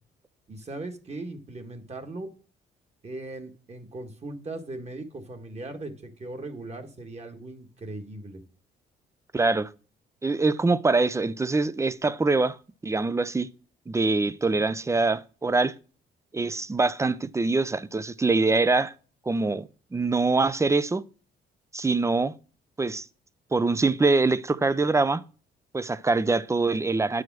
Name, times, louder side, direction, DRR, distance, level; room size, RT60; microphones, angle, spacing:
voice 1, 0.5-2.3 3.0-8.4, right 2 dB, 35° right, 1.6 m, -38 dB
voice 2, 9.3-9.7 10.2-12.6 12.8-13.5 13.9-15.7 16.3-18.9 19.3-21.0 21.7-22.3 22.8-23.0 23.5-25.2 25.7-27.2, right 3 dB, 15° right, 0.5 m, -24 dB
9.4 x 4.9 x 6.0 m
cardioid pair, 90°, 20 cm